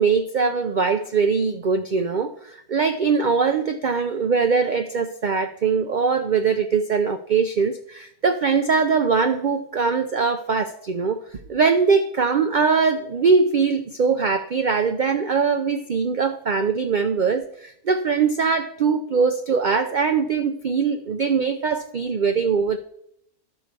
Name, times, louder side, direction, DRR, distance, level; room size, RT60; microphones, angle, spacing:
voice 1, 0.0-11.2 11.5-22.8, right 5 dB, 80° right, 8 dB, 0.4 m, -21 dB
11.5 x 4.5 x 6.7 m, 0.73 s
omnidirectional pair, 1.6 m